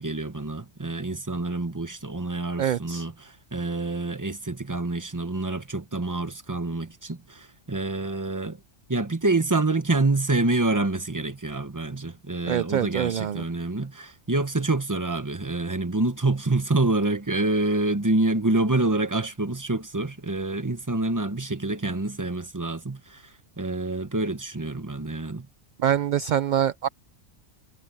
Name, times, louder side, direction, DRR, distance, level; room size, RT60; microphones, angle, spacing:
voice 1, 0.0-8.6 8.9-23.2 23.6-25.5, right 2 dB, 15° right, 1.1 m, -27 dB
voice 2, 2.6-3.1 12.5-13.4 25.8-26.9, right 10 dB, 55° right, 0.5 m, -25 dB
omnidirectional pair, 1.2 m